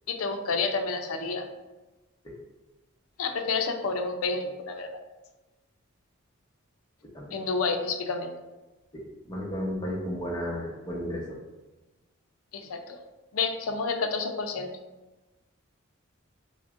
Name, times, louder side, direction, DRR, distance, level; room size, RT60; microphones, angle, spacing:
voice 1, 0.1-1.5 3.2-4.9 7.3-8.3 12.5-13.1 13.3-14.7, left 4 dB, 85° left, 5 dB, 0.5 m, -29 dB
voice 2, 8.9-11.4, equal, 20° left, -4 dB, 0.8 m, -33 dB
6.1 x 2.1 x 2.4 m, 1.1 s
head